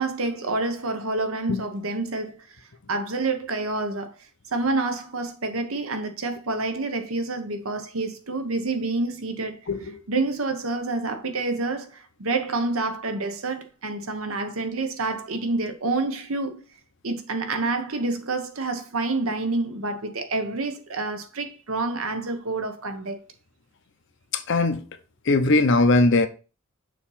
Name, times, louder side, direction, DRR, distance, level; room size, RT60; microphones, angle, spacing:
voice 1, 0.0-2.4 2.9-4.1 4.5-9.6 10.1-16.6 17.0-23.2, right 3 dB, 80° right, 1.1 m, -28 dB
voice 2, 9.7-10.0 24.3-24.8 25.3-26.3, left 2 dB, 60° left, 0.7 m, -20 dB
6.5 x 3.0 x 5.6 m
head